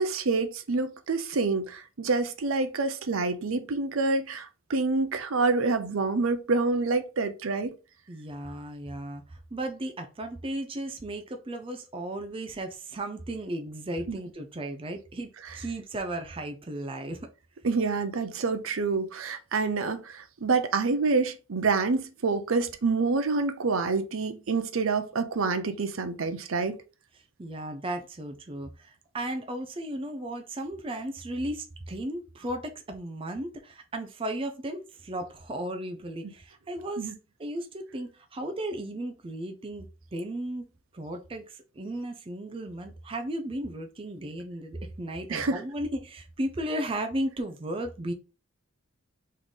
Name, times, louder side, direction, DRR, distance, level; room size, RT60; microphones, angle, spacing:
voice 1, 0.0-7.7 14.1-14.2 17.6-26.8 37.0-37.1 45.3-45.6, right 4 dB, 75° right, 0.6 m, -27 dB
voice 2, 8.1-17.2 27.4-37.1 37.4-48.1, right 1 dB, 25° right, 0.5 m, -35 dB
3.6 x 3.2 x 4.0 m
head